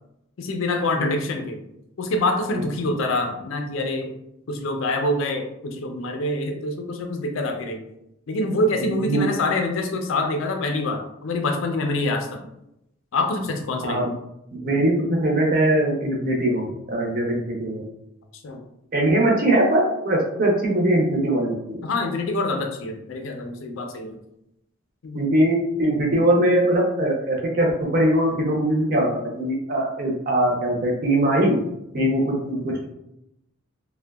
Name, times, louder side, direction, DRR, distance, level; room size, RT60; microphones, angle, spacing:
voice 1, 0.4-1.6 2.0-4.1 4.5-7.8 8.3-12.4 13.1-14.1 18.4-18.6 21.8-24.2 25.0-25.2 32.0-32.1, left 2 dB, 65° left, 4 dB, 0.4 m, -25 dB
voice 2, 8.8-9.3 13.8-14.1 14.6-17.8 18.9-21.8 25.1-29.1 29.4-31.6 31.9-32.8, right 1 dB, 40° right, -1 dB, 0.5 m, -21 dB
2.6 x 2.1 x 2.2 m, 0.83 s
head